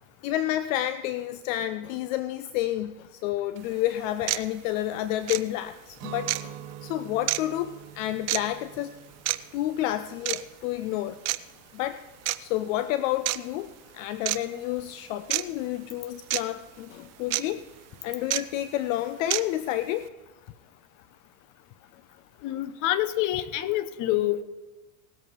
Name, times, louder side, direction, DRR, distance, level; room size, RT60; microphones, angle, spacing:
voice 1, 0.2-6.6 6.8-8.9 9.5-11.2 11.7-12.0 12.4-17.6 18.0-20.1, left 13 dB, 60° left, 13 dB, 0.7 m, -30 dB
sound 1, 3.6-3.7 4.3-4.4 5.3-5.4 6.3-6.4 7.3-7.4 8.3-8.4 9.3-9.4 10.3-10.4 11.3-11.4 12.3-12.4 13.3-13.4 14.3-14.4 15.3-15.4 16.3-16.4 17.3-17.4 18.3-18.4 19.3-19.4, right 18 dB, 35° right, 0.6 m, -26 dB
Guitar, 6.0-11.8, right 11 dB, 65° right, 2.0 m, -45 dB
voice 2, 22.4-24.4, left 14 dB, 45° left, 13 dB, 1.1 m, -27 dB
18.5 x 8.1 x 4.6 m, 1.2 s
supercardioid pair, 115°, 44 cm